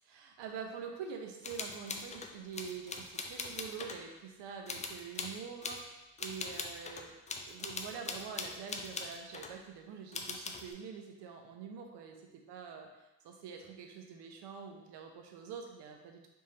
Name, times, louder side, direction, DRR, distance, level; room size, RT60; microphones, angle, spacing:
voice 1, 0.1-7.1 7.5-12.2 12.5-12.9 13.2-16.3, right 6 dB, 70° right, 3 dB, 0.8 m, -45 dB
sound 1, 1.4-4.0 4.7-5.8 6.2-9.5 10.1-10.7, left 4 dB, 20° left, 0.3 m, -41 dB
3.6 x 3.2 x 2.8 m, 1.0 s
supercardioid pair, 65°, 43 cm